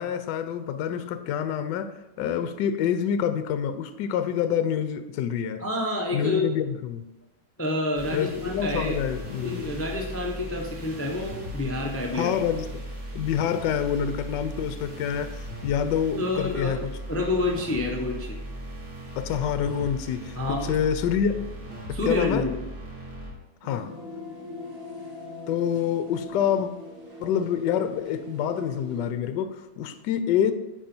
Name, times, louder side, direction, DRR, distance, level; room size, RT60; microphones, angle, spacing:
voice 1, 0.0-5.6 6.1-7.1 8.1-9.7 12.1-12.7 13.1-16.9 19.2-21.4 21.9-22.5 23.6-23.9 25.5-26.7 27.2-30.5, left 8 dB, 70° left, 10 dB, 1.2 m, -27 dB
voice 2, 5.6-6.5 7.6-8.9 9.4-12.3 16.2-18.4 20.3-20.7 21.9-22.5, left 2 dB, 20° left, 0 dB, 0.3 m, -28 dB
sound 1, 7.9-23.3, equal, 90° right, 2.5 m, -38 dB
sound 2, 23.6-29.0, left 2 dB, 70° right, 2.7 m, -41 dB
9.2 x 4.9 x 4.4 m, 1.0 s
omnidirectional pair, 2.1 m